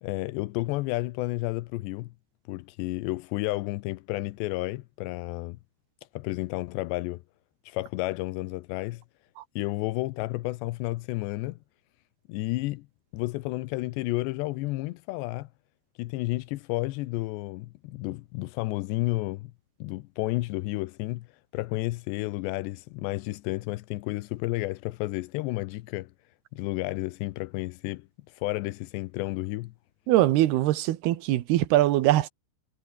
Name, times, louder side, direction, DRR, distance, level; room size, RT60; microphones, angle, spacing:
voice 1, 0.0-2.1 2.5-5.6 6.1-7.2 7.7-9.0 9.6-11.6 12.3-12.9 13.1-15.5 16.0-19.5 19.8-21.3 21.5-26.1 26.5-29.7, left 20 dB, 85° left, 3.0 m, -31 dB
voice 2, 30.1-32.3, right 15 dB, 75° right, 3.0 m, -22 dB
omnidirectional pair, 4.9 m